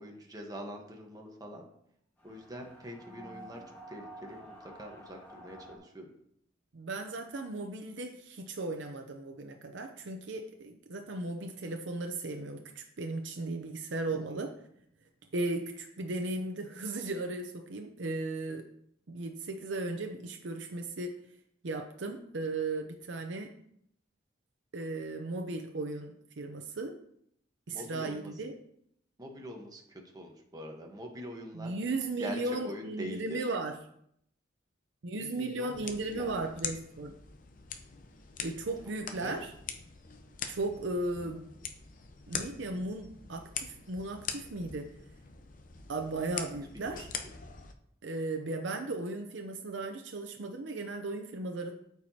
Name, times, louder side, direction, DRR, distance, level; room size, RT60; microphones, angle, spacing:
voice 1, 0.0-1.7 2.2-3.6 3.9-6.1 27.7-28.3 29.2-31.7 32.2-32.4 32.6-33.5 35.1-36.4 39.2-39.3 46.7-47.0, equal, 20° right, 1 dB, 1.2 m, -44 dB
sound 1, 2.2-5.8, right 1 dB, 10° left, 1.5 m, -50 dB
voice 2, 6.7-14.5 15.3-18.6 19.1-21.1 21.6-23.5 24.7-26.1 26.4-26.9 27.7-28.5 31.5-33.7 35.0-37.1 38.4-39.5 40.5-41.5 42.3-44.9 45.9-47.1 48.0-51.7, right 2 dB, 75° right, 3 dB, 0.7 m, -36 dB
sound 2, 35.7-47.7, left 6 dB, 45° left, 0.7 m, -43 dB
13.0 x 4.7 x 2.8 m, 0.71 s
head